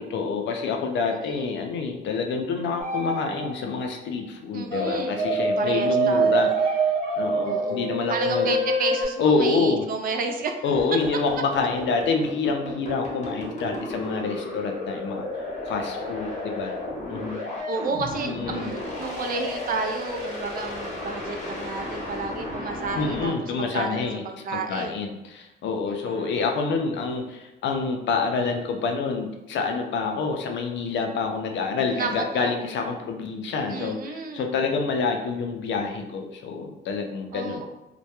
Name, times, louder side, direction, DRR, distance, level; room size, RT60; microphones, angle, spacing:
voice 1, 0.0-6.9 7.2-8.6 9.2-9.8 10.6-16.7 17.1-17.4 18.3-18.7 23.0-24.2 24.5-37.6, left 4 dB, 70° left, 3 dB, 0.4 m, -27 dB
voice 2, 1.0-1.7 4.5-5.2 5.6-6.5 7.4-10.6 17.7-24.9 25.9-26.3 31.9-32.6 33.7-34.5 37.3-37.7, right 3 dB, 45° right, 4 dB, 0.4 m, -31 dB
sound 1, 2.8-3.8 4.7-9.0, right 2 dB, 85° right, 0.8 m, -25 dB
sound 2, 10.7-23.3, left 2 dB, 35° left, 0.8 m, -34 dB
2.1 x 2.1 x 2.8 m, 0.94 s
cardioid pair, 90°, 20 cm